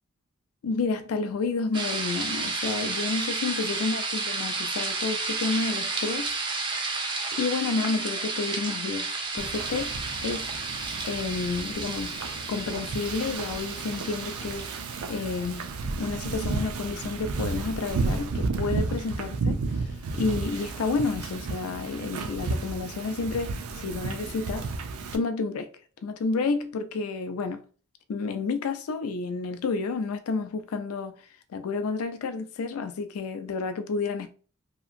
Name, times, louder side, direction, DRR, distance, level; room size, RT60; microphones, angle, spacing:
voice 1, 0.6-6.3 7.3-10.0 10.2-10.5 11.1-12.2 12.5-14.8 15.1-15.7 16.0-19.6 20.1-24.7 25.1-25.7 26.0-27.6 28.1-31.2 31.5-34.3, left 4 dB, 85° left, 0.4 m, -30 dB
sound 1, 1.7-15.8, right 3 dB, 20° right, 0.3 m, -32 dB
Wind / Ocean, 9.4-25.2, right 3 dB, 90° right, 0.4 m, -33 dB
2.9 x 2.5 x 2.5 m
head